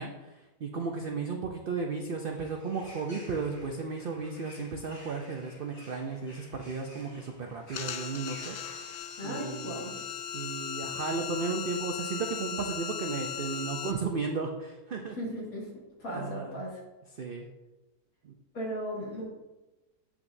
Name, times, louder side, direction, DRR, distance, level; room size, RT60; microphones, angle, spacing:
voice 1, 0.0-10.0 10.3-15.2 16.1-16.6 17.1-17.5 18.2-18.4, right 4 dB, 85° right, 2 dB, 0.4 m, -35 dB
sound 1, 2.3-9.0, left 1 dB, 45° left, 2.7 m, -53 dB
sound 2, 7.7-13.9, left 7 dB, 85° left, 0.5 m, -37 dB
voice 2, 9.2-10.0 15.2-16.8 18.5-19.3, equal, 60° left, -4 dB, 2.3 m, -37 dB
7.7 x 6.0 x 2.6 m, 1.1 s
omnidirectional pair, 1.7 m